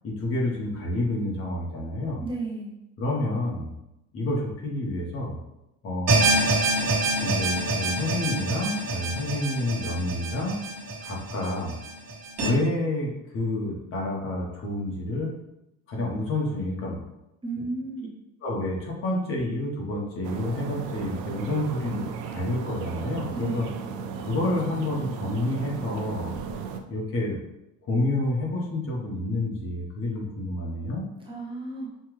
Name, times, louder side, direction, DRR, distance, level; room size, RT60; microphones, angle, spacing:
voice 1, 0.0-2.2 3.0-3.7 4.1-5.4 5.8-6.3 7.2-10.6 11.0-11.8 12.4-15.3 15.9-17.0 18.4-23.7 24.2-26.4 26.9-27.4 27.9-31.1, left 1 dB, 45° left, -2 dB, 1.1 m, -29 dB
voice 2, 2.2-2.7 17.4-18.1 23.3-23.8 31.3-32.0, right 3 dB, 15° right, -5 dB, 0.9 m, -34 dB
sound 1, 6.1-12.5, right 2 dB, 50° right, 1.1 m, -26 dB
sound 2, 20.2-26.8, right 6 dB, 65° right, 0.5 m, -35 dB
5.7 x 2.2 x 3.1 m, 0.88 s
cardioid pair, 145°, 33 cm